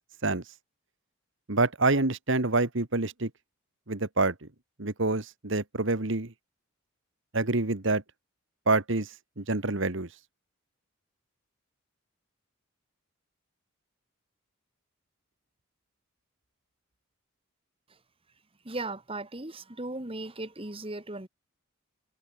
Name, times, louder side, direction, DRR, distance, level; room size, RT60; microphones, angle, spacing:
voice 1, 1.5-3.3 3.9-4.5 4.8-6.3 7.3-8.0 8.7-9.1 9.4-10.1, right 3 dB, 60° right, 1.7 m, -27 dB
voice 2, 18.7-21.3, right 2 dB, 25° right, 1.8 m, -37 dB
head